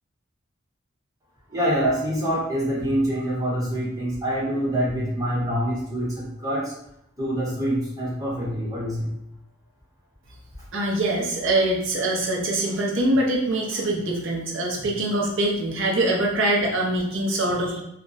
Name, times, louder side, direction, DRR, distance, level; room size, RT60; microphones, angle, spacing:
voice 1, 1.5-6.7 7.2-9.1, equal, 15° right, -6 dB, 0.9 m, -25 dB
voice 2, 10.7-17.8, right 1 dB, 70° right, -2 dB, 0.7 m, -23 dB
2.5 x 2.2 x 3.9 m, 0.79 s
head